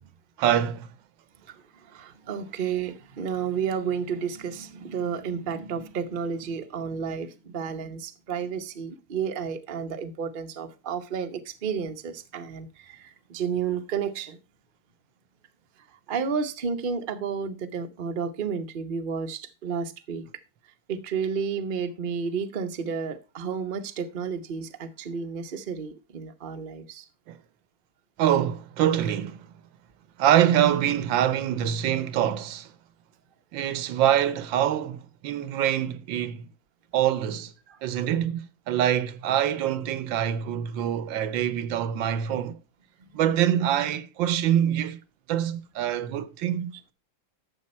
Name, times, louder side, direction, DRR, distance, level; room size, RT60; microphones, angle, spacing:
voice 1, 0.4-0.9 27.3-27.4 28.2-29.5 30.2-32.7 33.5-36.5 36.9-37.5 37.8-42.5 43.1-45.0 45.3-46.7, right 10 dB, 75° right, 1.4 m, -25 dB
voice 2, 1.9-14.4 16.1-20.3 20.9-27.0 37.7-37.8, right 6 dB, 40° right, 0.7 m, -31 dB
12.0 x 7.1 x 4.2 m
omnidirectional pair, 2.1 m